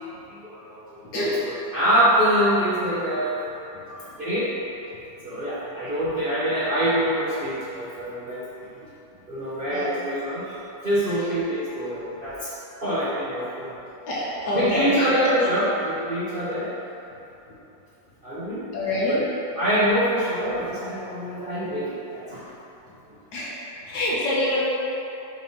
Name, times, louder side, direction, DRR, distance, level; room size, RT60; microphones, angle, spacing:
voice 1, 0.3-0.9 1.1-1.3 1.7-3.3 3.8-4.5 5.2-8.4 9.3-12.5 12.8-13.8 14.5-16.7 18.2-18.6 19.1-19.2 19.6-22.6, equal, 40° right, -10 dB, 0.8 m, -25 dB
voice 2, 14.1-15.1 18.7-19.2 23.3-23.6 23.9-24.6, left 1 dB, 70° left, -7 dB, 1.9 m, -25 dB
4.7 x 4.5 x 5.2 m, 3.0 s
omnidirectional pair, 2.0 m